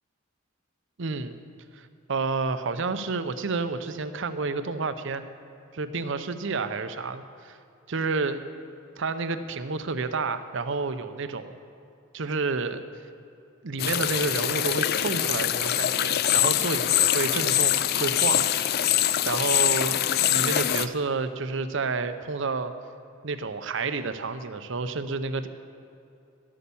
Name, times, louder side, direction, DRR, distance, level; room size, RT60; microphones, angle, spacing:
voice 1, 1.0-1.4 1.7-5.2 5.7-7.6 7.9-8.4 9.0-11.6 12.1-12.8 13.6-18.5 19.2-22.7 23.2-25.5, right 4 dB, 65° right, 10 dB, 0.7 m, -30 dB
sound 1, 13.8-20.9, left 11 dB, 50° left, 0.4 m, -24 dB
12.5 x 8.6 x 7.0 m, 2.7 s
head